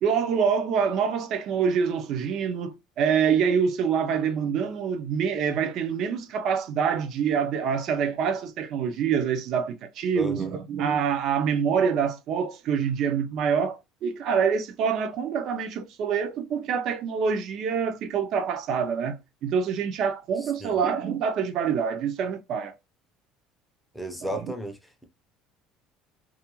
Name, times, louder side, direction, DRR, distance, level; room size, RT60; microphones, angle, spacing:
voice 1, 0.0-22.7 24.3-24.5, right 7 dB, 50° right, 0.4 m, -26 dB
voice 2, 10.2-10.6 20.6-20.8 23.9-25.0, right 1 dB, ahead, 0.5 m, -34 dB
2.3 x 2.2 x 2.9 m
cardioid pair, 145°, 0 cm